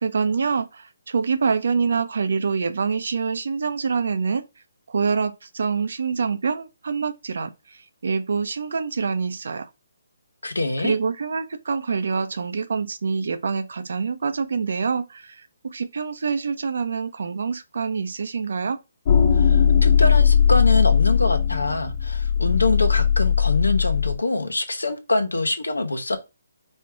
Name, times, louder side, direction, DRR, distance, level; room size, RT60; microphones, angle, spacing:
voice 1, 0.0-4.5 4.9-9.7 10.8-18.8, right 5 dB, 65° right, 0.6 m, -26 dB
voice 2, 10.4-10.9 19.3-26.2, left 2 dB, 90° left, 0.9 m, -24 dB
sound 1, 19.0-24.1, left 7 dB, 40° left, 0.7 m, -18 dB
4.4 x 2.4 x 4.6 m
figure-of-eight pair, 145°, 0 cm